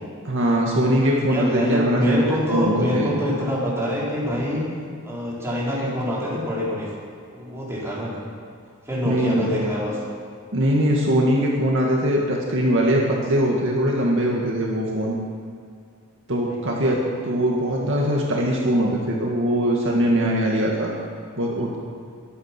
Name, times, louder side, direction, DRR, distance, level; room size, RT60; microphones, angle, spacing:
voice 1, 0.2-2.2 2.5-3.1 9.0-9.5 10.5-15.2 16.3-20.9 21.4-21.8, equal, 60° right, -2 dB, 2.0 m, -21 dB
voice 2, 1.3-4.7 5.0-6.9 7.3-8.2 8.9-10.0 16.4-17.1, equal, 10° right, -6 dB, 4.1 m, -25 dB
22.0 x 8.8 x 6.0 m, 2.3 s
head